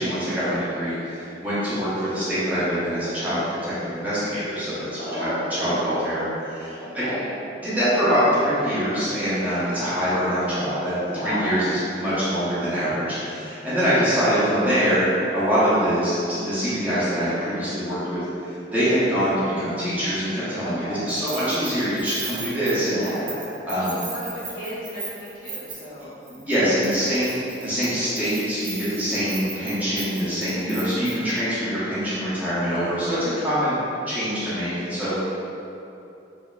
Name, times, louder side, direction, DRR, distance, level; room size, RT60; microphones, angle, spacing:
voice 1, 0.0-7.1 7.6-10.9 11.2-15.0 15.3-23.0 23.7-23.9 26.2-33.8 34.1-35.1, equal, 10° right, -12 dB, 0.9 m, -24 dB
voice 2, 5.0-6.3 6.8-7.3 11.1-11.7 20.6-21.1 22.9-26.2 26.7-27.3, equal, 50° left, -9 dB, 0.8 m, -33 dB
Keys jangling, 21.1-26.0 26.3-26.6 26.8-31.4, right 4 dB, 45° right, 0.7 m, -37 dB
4.5 x 2.8 x 2.3 m, 2.9 s
head